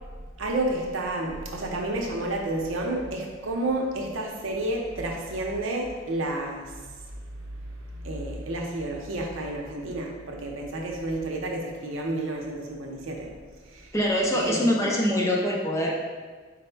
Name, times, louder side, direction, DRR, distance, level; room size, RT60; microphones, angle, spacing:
voice 1, 0.4-6.7 8.0-13.3 13.7-13.9 14.3-14.7, right 2 dB, 75° right, 0 dB, 0.6 m, -30 dB
voice 2, 13.9-15.9, left 1 dB, 15° left, -2 dB, 0.5 m, -24 dB
4.1 x 2.0 x 4.4 m, 1.4 s
head